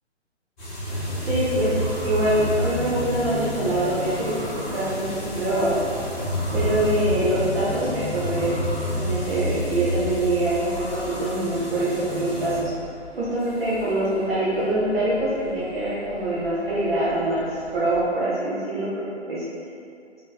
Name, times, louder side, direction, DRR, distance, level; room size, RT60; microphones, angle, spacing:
sound 1, 0.6-12.6, equal, 40° left, 0.8 m, -30 dB
sound 2, 0.8-7.0, equal, 5° left, 1.1 m, -36 dB
voice 1, 1.3-1.7 2.0-4.5 4.7-5.7 6.5-12.7 13.2-17.5 17.7-19.4, right 1 dB, 55° right, -9 dB, 0.7 m, -24 dB
sound 3, 2.3-18.1, left 1 dB, 25° right, 0.9 m, -44 dB
2.9 x 2.7 x 2.3 m, 2.4 s
figure-of-eight pair, 140°, 35 cm